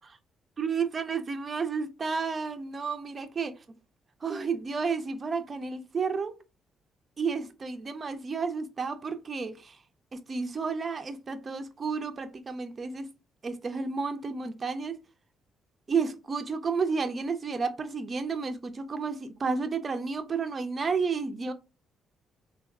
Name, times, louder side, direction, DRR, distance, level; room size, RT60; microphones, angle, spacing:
voice 1, 0.6-3.6 4.2-6.4 7.2-9.8 10.1-13.1 13.4-15.0 15.9-21.5, right 5 dB, 35° right, 0.4 m, -31 dB
3.4 x 2.3 x 2.2 m
cardioid pair, 90°, 0 cm